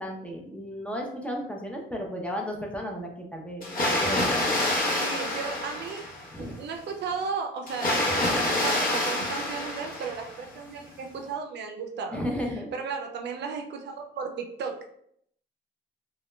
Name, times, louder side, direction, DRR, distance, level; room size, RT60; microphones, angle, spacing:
voice 1, 0.0-4.7 6.3-6.6 12.1-12.7, equal, 5° left, 0 dB, 0.5 m, -34 dB
Water, 3.6-6.4 7.7-10.5, left 1 dB, 45° left, 0.8 m, -27 dB
voice 2, 4.9-6.0 6.4-12.2 12.5-15.0, right 5 dB, 60° right, 3 dB, 0.4 m, -35 dB
2.2 x 2.0 x 3.0 m, 0.68 s
cardioid pair, 90°, 20 cm